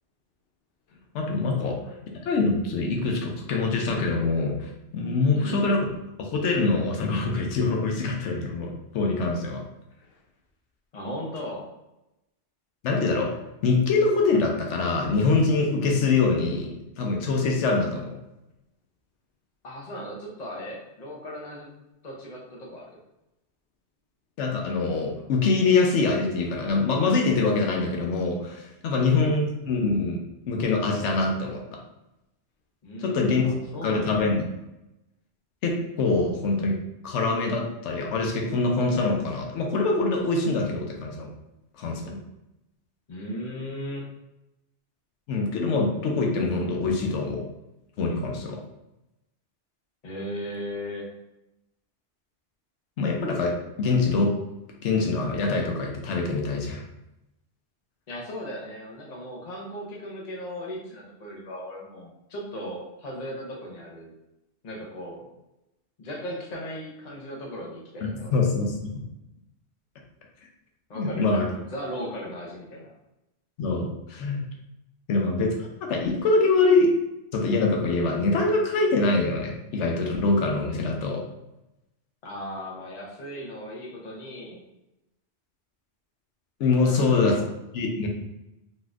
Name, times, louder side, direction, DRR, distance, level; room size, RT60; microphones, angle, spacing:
voice 1, 1.1-1.8 2.2-5.9 6.2-9.6 12.8-13.4 13.6-18.2 24.4-31.8 33.0-33.5 33.8-34.4 35.6-36.8 37.0-41.3 41.8-42.2 45.3-47.5 48.0-48.6 53.0-54.3 54.8-56.8 68.3-68.9 70.9-71.5 73.6-74.4 75.1-76.9 77.3-81.2 86.6-87.4 87.7-88.1, left 3 dB, 85° left, 1 dB, 0.9 m, -24 dB
voice 2, 5.3-5.6 10.9-11.7 19.6-21.7 22.0-22.9 28.9-29.2 32.8-34.2 43.1-44.1 50.0-51.1 58.1-64.1 64.6-65.3 66.0-68.4 70.9-72.9 82.2-84.6 86.8-87.4, equal, 40° left, -2 dB, 0.8 m, -37 dB
4.0 x 2.6 x 2.3 m, 0.91 s
omnidirectional pair, 1.2 m